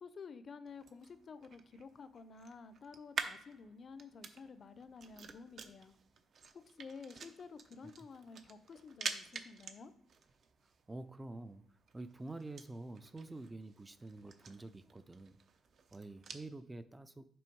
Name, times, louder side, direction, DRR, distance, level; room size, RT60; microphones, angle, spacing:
voice 1, 0.0-5.9 6.5-9.9, left 5 dB, 50° left, 13 dB, 0.6 m, -52 dB
sound 1, 0.7-16.5, right 5 dB, 55° right, 0.7 m, -49 dB
voice 2, 10.9-15.4 15.9-17.3, right 2 dB, 15° right, 11 dB, 0.4 m, -48 dB
6.1 x 4.3 x 4.6 m, 0.66 s
cardioid pair, 90°, 0 cm